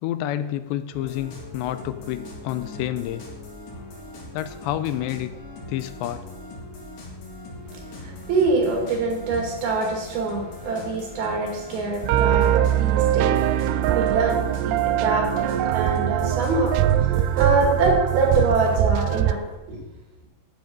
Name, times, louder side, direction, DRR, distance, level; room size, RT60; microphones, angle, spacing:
voice 1, 0.0-3.2 4.3-5.3 5.7-6.2, left 12 dB, 90° left, 12 dB, 2.9 m, -29 dB
sound 1, 0.9-18.9, left 2 dB, 55° left, 3.4 m, -40 dB
voice 2, 7.7-19.8, right 3 dB, 65° right, 1 dB, 3.9 m, -25 dB
sound 2, 12.0-19.3, right 12 dB, 80° right, 2.5 m, -21 dB
10.0 x 9.1 x 5.3 m, 1.0 s
omnidirectional pair, 4.9 m